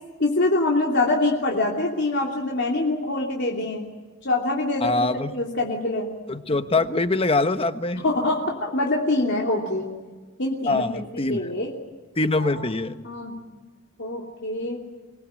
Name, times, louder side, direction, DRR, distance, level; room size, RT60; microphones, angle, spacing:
voice 1, 0.2-3.9 4.2-6.1 8.0-9.9 10.4-11.7 12.4-13.4 14.0-14.8, left 2 dB, 60° left, -1 dB, 3.0 m, -25 dB
voice 2, 4.8-5.3 6.3-8.0 10.6-11.5 12.2-12.9, left 2 dB, 30° left, 9 dB, 1.2 m, -23 dB
25.0 x 20.0 x 9.0 m, 1.3 s
head